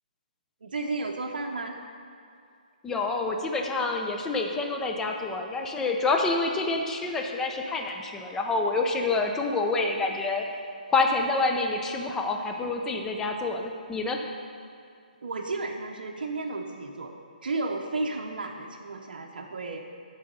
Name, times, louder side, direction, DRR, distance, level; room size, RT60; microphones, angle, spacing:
voice 1, 0.6-1.8 15.2-17.1 17.4-19.8, right 3 dB, 75° right, 2 dB, 0.7 m, -33 dB
voice 2, 2.8-10.4 10.9-14.2, left 3 dB, 10° left, 2 dB, 0.5 m, -27 dB
10.5 x 4.0 x 5.3 m, 2.4 s
hypercardioid pair, 160°, 5 cm